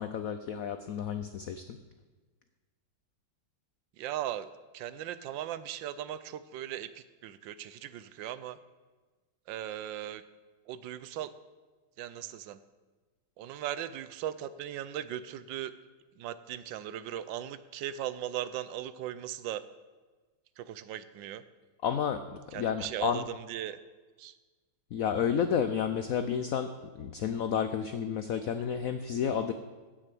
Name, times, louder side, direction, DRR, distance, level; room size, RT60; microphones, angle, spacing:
voice 1, 0.0-1.8 21.8-22.2 22.5-23.2 24.9-26.7 26.9-29.5, left 8 dB, 85° left, 9 dB, 0.7 m, -31 dB
voice 2, 4.0-4.5 4.7-8.6 9.5-10.2 10.7-11.3 12.0-12.6 13.4-15.7 16.2-19.6 20.6-21.4 22.5-23.8 24.2-24.4, right 11 dB, 75° right, 14 dB, 1.2 m, -38 dB
15.5 x 6.4 x 6.0 m, 1.3 s
omnidirectional pair, 2.1 m